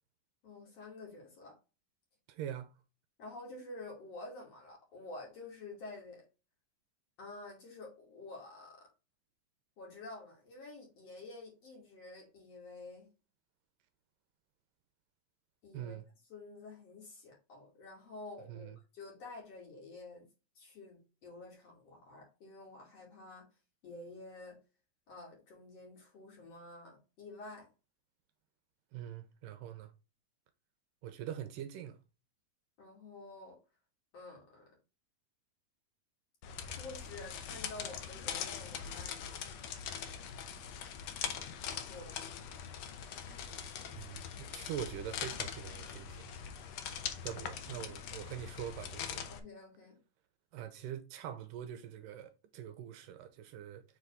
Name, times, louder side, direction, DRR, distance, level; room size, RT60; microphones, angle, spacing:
voice 1, 0.4-1.5 3.2-6.2 7.2-8.9 9.8-13.1 15.6-16.0 16.3-20.3 20.5-23.5 23.8-24.6 25.1-27.7 32.8-33.6 34.1-34.7 36.6-39.2 41.7-42.2 44.0-44.1 49.3-50.0, left 2 dB, 50° left, 3.3 m, -49 dB
voice 2, 2.3-2.7 15.7-16.1 18.5-18.8 28.9-29.9 31.0-32.0 43.9-46.3 47.2-49.2 50.5-53.8, right 10 dB, 80° right, 2.2 m, -43 dB
sound 1, 36.4-49.4, left 8 dB, 80° left, 1.5 m, -42 dB
7.2 x 3.9 x 3.5 m
omnidirectional pair, 4.1 m